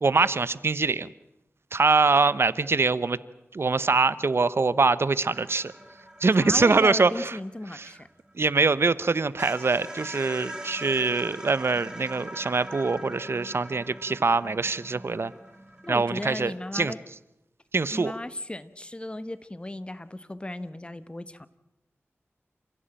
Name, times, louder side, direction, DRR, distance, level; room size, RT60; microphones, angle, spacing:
voice 1, 0.0-1.1 1.7-3.2 3.5-5.7 6.2-7.4 7.7-7.9 8.4-15.3 15.9-16.9 17.7-18.1, right 4 dB, 60° right, 16 dB, 0.9 m, -24 dB
sound 1, 5.3-8.7 9.0-9.1 9.4-16.1, right 1 dB, 15° right, 4.3 m, -42 dB
voice 2, 6.4-8.1 15.8-17.0 17.9-21.5, left 1 dB, 20° left, 13 dB, 1.3 m, -35 dB
28.5 x 16.0 x 9.0 m, 0.88 s
wide cardioid pair, 80°, 5 cm